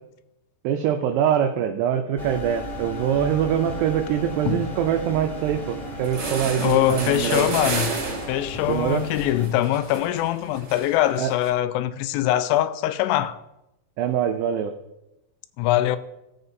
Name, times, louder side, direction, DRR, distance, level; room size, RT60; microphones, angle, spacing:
voice 1, 0.6-7.6 8.7-9.1 11.2-11.3 14.0-14.7, right 9 dB, 90° right, 2.3 m, -24 dB
sound 1, 2.2-9.5, equal, ahead, 1.3 m, -35 dB
sound 2, 5.7-5.8 6.0-11.5, right 3 dB, 60° right, 1.4 m, -32 dB
voice 2, 6.6-7.9 8.3-13.4 15.6-16.0, left 13 dB, 85° left, 3.0 m, -23 dB
16.0 x 7.9 x 2.7 m
omnidirectional pair, 5.4 m